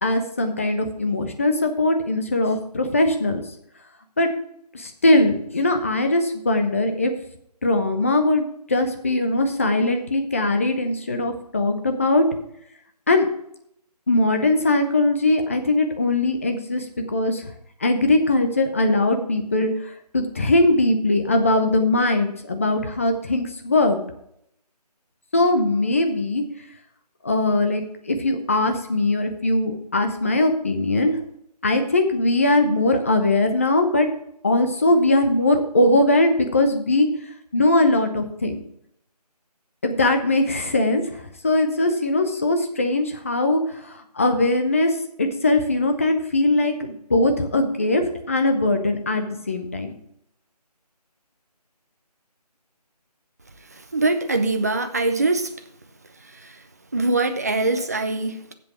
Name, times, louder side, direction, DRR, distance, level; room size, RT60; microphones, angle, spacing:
voice 1, 0.0-3.4 4.2-4.3 4.7-7.1 7.6-12.2 13.1-13.3 14.1-16.8 17.1-17.5 17.8-19.7 20.1-24.0 25.3-26.4 27.2-31.2 31.6-34.1 34.4-37.1 37.5-38.6 39.8-41.0 41.4-43.6 43.9-49.9, left 2 dB, 20° left, 6 dB, 0.8 m, -20 dB
voice 2, 53.9-55.5 56.3-56.6 56.9-58.5, right 2 dB, 25° right, 7 dB, 0.6 m, -23 dB
8.1 x 7.7 x 6.1 m, 0.72 s
figure-of-eight pair, 160°, 21 cm